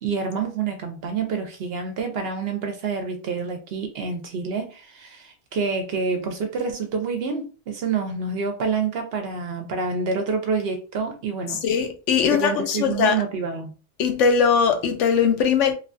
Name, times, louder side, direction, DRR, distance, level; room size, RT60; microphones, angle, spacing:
voice 1, 0.0-11.6 12.3-13.7, right 5 dB, 65° right, 0.8 m, -27 dB
voice 2, 11.6-13.2 14.0-15.7, left 6 dB, 85° left, 0.9 m, -20 dB
2.9 x 2.2 x 2.6 m
omnidirectional pair, 1.2 m